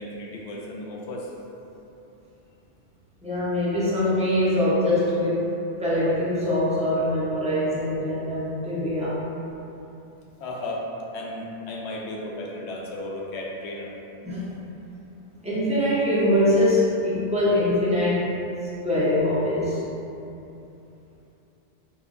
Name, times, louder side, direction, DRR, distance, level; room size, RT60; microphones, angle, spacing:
voice 1, 0.0-1.3 10.4-10.9 11.1-13.9, left 1 dB, 85° left, -2 dB, 0.8 m, -34 dB
voice 2, 3.2-5.5 5.8-9.2 14.2-14.5 15.4-18.3 18.8-19.8, left 1 dB, 10° right, -9 dB, 0.6 m, -23 dB
5.4 x 2.0 x 2.4 m, 2.8 s
omnidirectional pair, 1.1 m